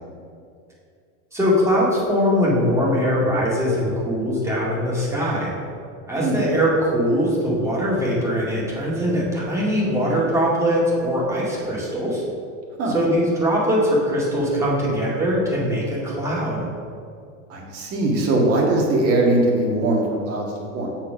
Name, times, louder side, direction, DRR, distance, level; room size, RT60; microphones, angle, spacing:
voice 1, 1.3-5.5 6.1-12.2 12.9-16.7, equal, 5° right, -6 dB, 2.0 m, -21 dB
voice 2, 17.5-20.5 20.7-20.9, right 2 dB, 35° right, -2 dB, 1.8 m, -20 dB
7.1 x 4.5 x 6.1 m, 2.3 s
supercardioid pair, 140°, 39 cm